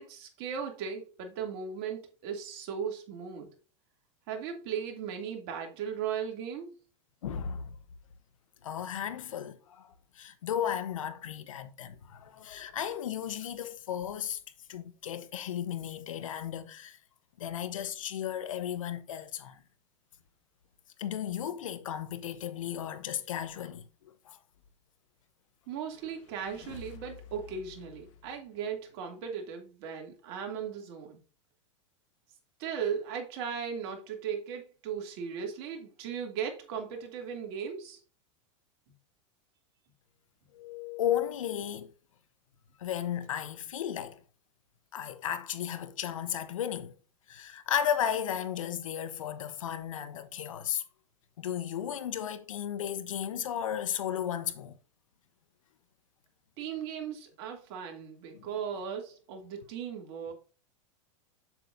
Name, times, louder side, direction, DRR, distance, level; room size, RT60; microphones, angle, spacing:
voice 1, 0.0-3.5 4.3-6.8 25.7-31.2 32.6-38.0 56.6-60.3, right 7 dB, 55° right, 2.7 m, -37 dB
voice 2, 7.2-7.7 8.6-14.4 14.7-17.0 17.4-19.6 21.0-24.4 40.5-41.9 42.8-44.2 44.9-46.9 47.3-50.8 51.4-54.7 58.3-58.5, left 9 dB, 90° left, 1.0 m, -34 dB
sound 1, 25.6-29.2, left 8 dB, 70° left, 1.3 m, -51 dB
7.9 x 7.5 x 2.6 m
hypercardioid pair, 120°, 16 cm